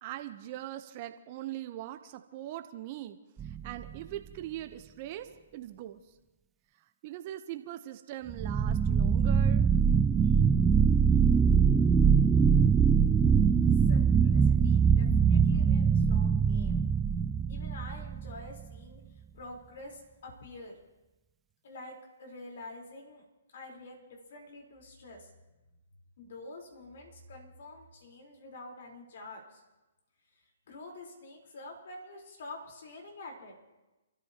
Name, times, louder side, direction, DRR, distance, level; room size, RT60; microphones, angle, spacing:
voice 1, 0.0-3.2 3.4-6.0 7.0-9.7, right 13 dB, 40° right, 8 dB, 0.9 m, -41 dB
sound 1, 3.4-4.0 8.3-18.5, right 6 dB, 15° right, 0.4 m, -23 dB
voice 2, 13.9-16.8 17.5-19.0 19.3-20.8 21.6-23.2 23.5-24.0 24.3-25.3 26.2-29.6 30.7-33.5, left 2 dB, 60° left, 0 dB, 4.1 m, -47 dB
30.0 x 13.5 x 3.0 m, 1.1 s
hypercardioid pair, 135°, 0 cm